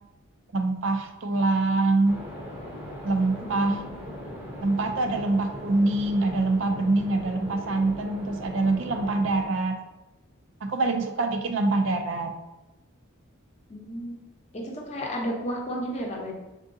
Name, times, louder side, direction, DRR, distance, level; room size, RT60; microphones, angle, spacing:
voice 1, 0.5-2.2 3.0-3.8 4.6-9.8 10.6-12.3, right 2 dB, 65° right, 6 dB, 0.4 m, -25 dB
sound 1, 2.0-9.5, equal, 10° right, 0.7 m, -39 dB
voice 2, 3.4-3.9 11.6-12.1 13.7-14.2 14.5-16.3, equal, 30° left, 0 dB, 0.7 m, -33 dB
4.5 x 3.7 x 2.6 m, 1.0 s
head